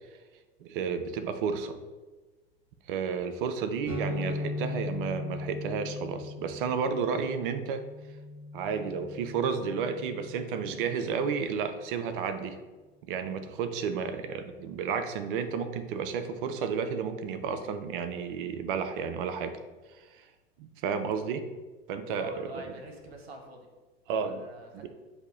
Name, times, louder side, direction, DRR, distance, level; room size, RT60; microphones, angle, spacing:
voice 1, 0.6-1.8 2.9-7.8 8.5-12.6 13.0-19.6 19.9-20.3 20.6-21.4 21.9-22.7 24.1-24.4 24.7-24.9, right 6 dB, 60° right, 9 dB, 0.5 m, -32 dB
sound 1, 3.8-11.5, left 2 dB, 5° right, 1.4 m, -39 dB
voice 2, 22.1-23.7 24.1-24.9, right 1 dB, 80° right, 2 dB, 1.0 m, -45 dB
8.0 x 2.8 x 2.4 m, 1.3 s
hypercardioid pair, 85°, 31 cm